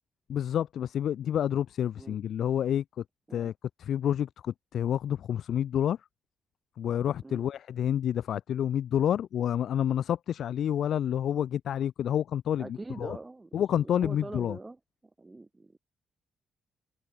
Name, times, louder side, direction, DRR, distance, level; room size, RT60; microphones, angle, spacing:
voice 1, 0.3-3.0 3.3-3.5 3.8-6.0 6.8-13.2 13.5-14.6, left 10 dB, 75° left, 0.4 m, -29 dB
voice 2, 12.6-14.8 15.2-15.8, right 2 dB, 20° right, 5.7 m, -43 dB
cardioid pair, 75°, 0 cm